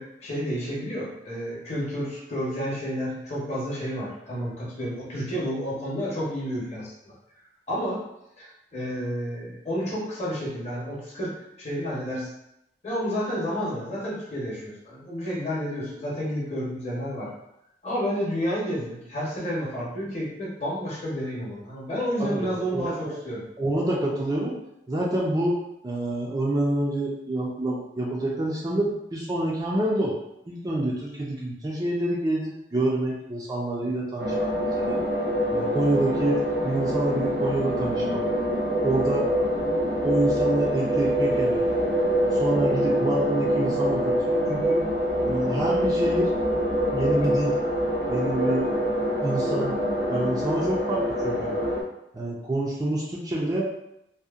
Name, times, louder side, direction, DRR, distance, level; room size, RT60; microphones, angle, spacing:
voice 1, 0.0-7.1 7.7-8.0 8.4-12.3 12.8-17.3 17.8-23.4, equal, 40° left, -6 dB, 0.8 m, -30 dB
voice 2, 22.2-23.1 23.6-24.5 24.9-25.6 25.8-30.2 30.5-34.5 34.8-35.0 35.5-38.2 38.8-39.3 40.0-41.6 42.3-44.2 44.5-44.8 45.3-46.3 46.9-47.5 48.1-48.7 49.2-49.7 50.1-51.6 52.1-53.7, right 1 dB, 20° right, -4 dB, 0.4 m, -27 dB
sound 1, 34.2-51.8, equal, 85° right, 0.6 m, -25 dB
2.7 x 2.0 x 2.4 m, 0.82 s
head